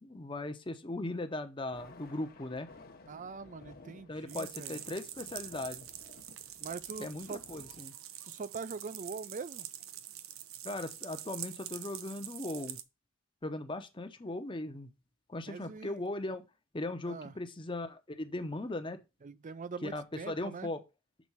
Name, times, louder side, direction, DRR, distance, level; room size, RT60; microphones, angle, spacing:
voice 1, 0.0-2.7 4.1-5.9 7.0-7.9 10.6-12.8 13.4-14.9 15.3-16.4 16.7-19.0 19.8-20.8, left 2 dB, 25° left, 0.8 m, -38 dB
Thunder, 1.6-7.8, left 2 dB, 45° left, 1.0 m, -56 dB
voice 2, 3.1-4.8 6.6-7.4 8.2-9.7 15.5-16.0 17.1-17.4 19.2-20.7, right 4 dB, 40° right, 0.4 m, -43 dB
sound 1, 4.3-12.8, right 11 dB, 85° right, 0.7 m, -45 dB
6.2 x 4.3 x 5.6 m
head